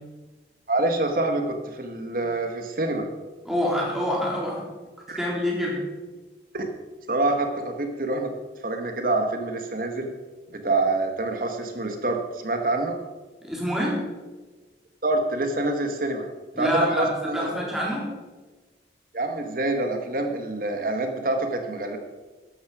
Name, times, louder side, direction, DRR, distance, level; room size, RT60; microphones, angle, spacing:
voice 1, 0.7-3.1 5.1-5.2 6.5-6.6 7.1-8.3 8.6-10.1 10.5-13.0 15.0-16.3 16.6-17.5 19.1-22.0, right 2 dB, 50° right, 4 dB, 1.7 m, -26 dB
voice 2, 3.4-4.6 5.2-5.8 13.4-14.0 16.5-18.1, equal, ahead, -4 dB, 3.8 m, -26 dB
13.0 x 12.0 x 5.0 m, 1.2 s
head